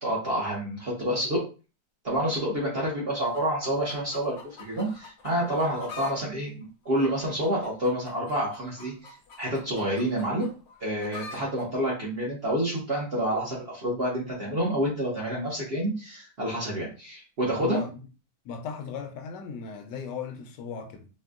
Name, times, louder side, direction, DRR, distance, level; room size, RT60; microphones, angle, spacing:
voice 1, 0.0-1.4 2.0-9.1 9.4-10.5 10.8-17.8, equal, 45° right, 0.9 m, -28 dB
sound 1, 3.2-6.2 6.5-11.7 12.5-12.6, left 4 dB, 60° left, 0.8 m, -46 dB
voice 2, 17.5-18.0 18.4-21.1, left 6 dB, 75° left, 1.2 m, -37 dB
4.3 x 2.2 x 2.3 m
omnidirectional pair, 1.9 m